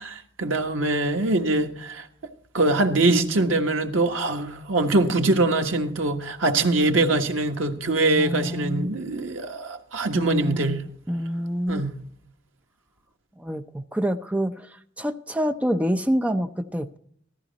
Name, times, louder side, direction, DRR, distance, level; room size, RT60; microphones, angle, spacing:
voice 1, 0.0-2.1 2.5-10.8 11.7-11.9, right 2 dB, 90° right, 1.4 m, -23 dB
voice 2, 8.2-8.9 10.1-11.8 13.4-17.0, equal, 5° right, 0.5 m, -27 dB
15.5 x 13.5 x 4.1 m
head